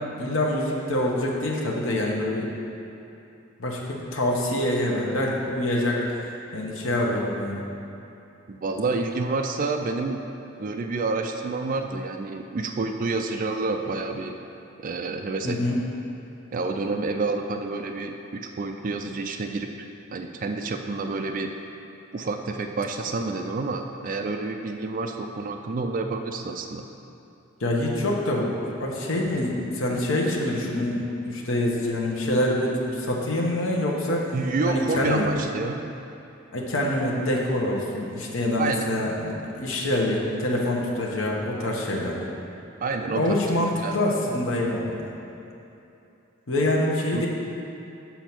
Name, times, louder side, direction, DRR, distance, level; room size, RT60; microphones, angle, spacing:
voice 1, 0.2-2.5 3.6-6.0 6.5-7.6 15.4-15.8 27.6-34.3 34.7-35.3 36.5-42.3 43.1-44.9 46.5-47.3, left 1 dB, 75° left, -2 dB, 1.0 m, -25 dB
voice 2, 8.5-10.2 10.6-14.4 14.8-15.6 16.5-19.7 20.1-21.5 22.1-26.8 34.3-35.8 38.6-38.9 42.8-44.0 47.1-47.3, right 3 dB, 40° right, 4 dB, 0.4 m, -28 dB
7.0 x 4.4 x 6.0 m, 2.8 s
head